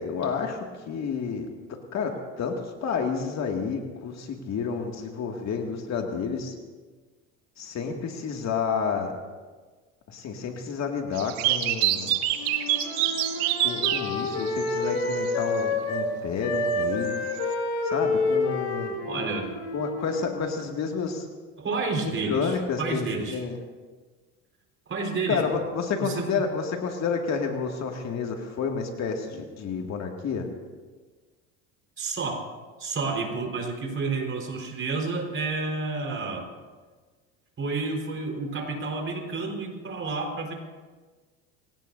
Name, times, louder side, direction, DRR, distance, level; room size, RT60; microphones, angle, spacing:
voice 1, 0.0-1.5 1.9-6.5 7.6-9.1 10.1-12.2 13.6-17.1 17.8-19.0 19.7-21.3 22.0-23.1 23.3-23.6 25.3-30.5, left 5 dB, 45° left, 2 dB, 2.3 m, -30 dB
sound 1, 11.1-15.4 17.1-17.5, right 13 dB, 80° right, 1.3 m, -27 dB
Wind instrument woodwind instrument, 12.3-16.1 16.4-20.5, left 3 dB, 75° left, 5.1 m, -29 dB
voice 2, 19.0-19.5 21.6-23.4 24.9-25.4 26.0-26.4 32.0-32.5 32.8-36.5 37.6-40.5, right 3 dB, 35° right, 2 dB, 4.5 m, -30 dB
26.5 x 17.5 x 2.7 m, 1.4 s
supercardioid pair, 95°, 36 cm